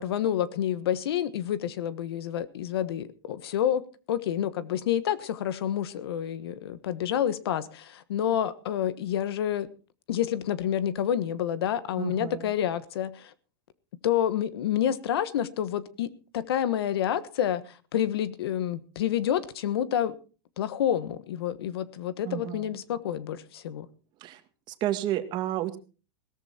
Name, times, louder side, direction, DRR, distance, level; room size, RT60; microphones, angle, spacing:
voice 1, 0.0-3.8 4.1-9.7 10.1-13.3 14.0-20.2 20.6-23.9, left 10 dB, 85° left, 16 dB, 1.4 m, -28 dB
voice 2, 12.0-12.5 22.2-22.8 24.2-24.4 24.7-25.8, right 13 dB, 35° right, 9 dB, 1.9 m, -31 dB
17.5 x 14.0 x 4.3 m, 0.36 s
supercardioid pair, 145°, 13 cm